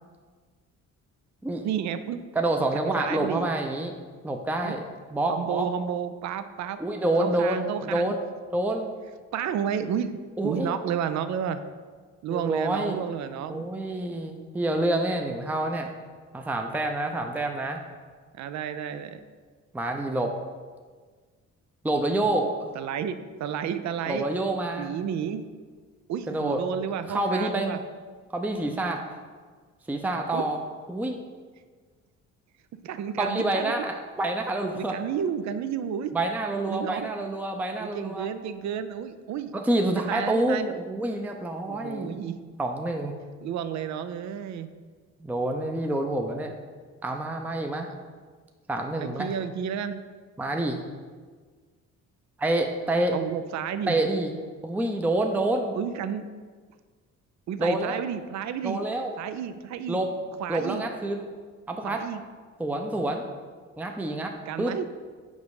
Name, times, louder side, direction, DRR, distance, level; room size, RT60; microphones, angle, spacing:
voice 1, 1.6-2.2 3.0-3.5 4.6-4.7 5.3-6.8 7.2-8.1 9.3-10.2 10.4-11.6 12.2-13.7 18.3-19.2 22.7-24.3 24.8-25.4 26.1-27.8 30.3-30.4 32.8-33.7 34.7-36.1 36.7-37.1 37.8-39.5 39.8-40.8 41.7-42.4 43.4-44.7 48.9-50.0 53.1-54.0 55.7-56.3 57.5-58.8 59.2-60.0 60.4-60.8 61.8-62.2 64.5-64.9, right 8 dB, 65° right, 11 dB, 0.5 m, -31 dB
voice 2, 2.3-3.9 4.2-4.8 5.1-5.7 6.8-8.2 8.5-8.9 10.4-10.8 12.3-13.0 13.5-15.9 16.3-17.8 19.7-20.3 21.8-22.7 24.1-24.9 26.3-26.6 27.1-27.8 28.3-29.2 29.9-30.6 30.9-31.2 33.2-35.0 36.1-38.3 39.5-42.3 42.6-43.1 45.2-46.5 47.0-47.9 48.7-49.3 50.4-50.8 52.4-53.2 53.9-54.3 54.6-55.8 57.6-58.0 58.6-59.1 59.9-60.1 60.5-61.3 61.7-62.0 62.6-63.2 63.8-64.7, right 1 dB, 5° right, 3 dB, 0.6 m, -27 dB
5.4 x 5.2 x 4.8 m, 1.5 s
cardioid pair, 90°, 30 cm